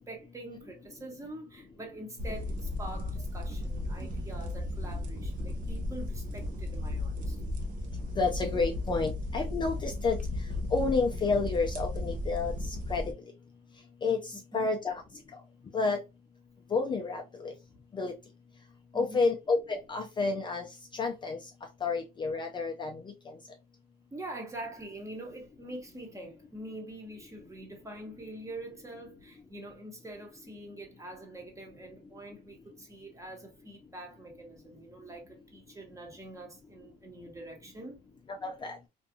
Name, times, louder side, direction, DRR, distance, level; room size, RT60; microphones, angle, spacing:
voice 1, 0.0-7.5 14.3-14.7 18.9-19.3 24.1-38.0, right 1 dB, 20° right, 0.9 m, -45 dB
sound 1, 2.2-13.1, left 2 dB, 50° right, 0.7 m, -35 dB
voice 2, 8.2-10.2 10.7-13.1 14.0-15.0 15.7-16.0 16.7-17.5 17.9-18.1 18.9-20.7 20.9-21.4 21.8-23.4 38.4-38.8, left 4 dB, 25° left, 0.4 m, -30 dB
2.5 x 2.3 x 2.6 m
cardioid pair, 110°, 17 cm